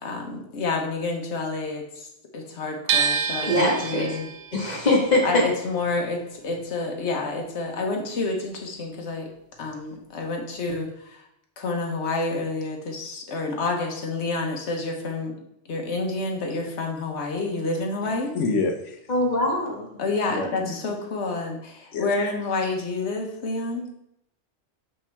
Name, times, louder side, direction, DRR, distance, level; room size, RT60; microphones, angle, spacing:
voice 1, 0.0-4.3 5.2-9.3 9.6-11.2 11.6-15.3 15.7-18.3 19.9-23.9, left 3 dB, 70° left, 1 dB, 1.4 m, -29 dB
sound 1, 2.9-8.9 9.2-10.5, right 7 dB, 85° right, 0.9 m, -30 dB
voice 2, 3.4-4.1 4.5-5.4 19.1-19.9, left 1 dB, 35° left, -2 dB, 1.7 m, -22 dB
voice 3, 18.3-19.0 20.3-20.7 21.9-22.1, left 3 dB, 90° left, 5 dB, 1.1 m, -27 dB
7.0 x 5.5 x 3.5 m, 0.77 s
omnidirectional pair, 1.2 m